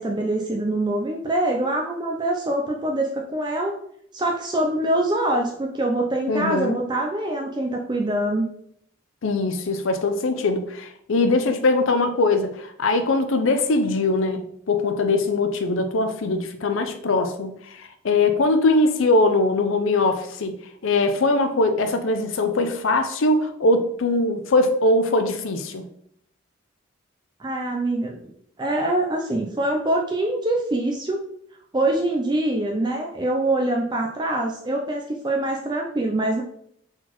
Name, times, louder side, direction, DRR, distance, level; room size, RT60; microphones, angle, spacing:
voice 1, 0.0-3.7 4.1-8.5 27.4-28.3 28.6-31.2 31.7-36.4, right 1 dB, 20° right, 0.4 m, -24 dB
voice 2, 6.3-6.8 9.2-20.6 20.8-25.8, left 2 dB, 75° left, 0.5 m, -21 dB
4.1 x 4.0 x 3.0 m
head